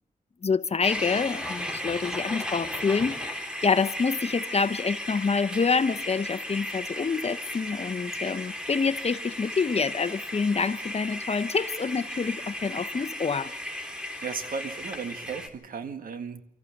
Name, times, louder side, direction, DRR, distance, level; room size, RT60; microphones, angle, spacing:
voice 1, 0.4-13.5, left 5 dB, 45° left, 0.9 m, -27 dB
sound 1, 0.8-15.5, left 1 dB, 5° right, 3.7 m, -35 dB
voice 2, 14.2-16.4, right 5 dB, 85° right, 1.8 m, -35 dB
25.0 x 14.5 x 8.1 m
cardioid pair, 75°, 14 cm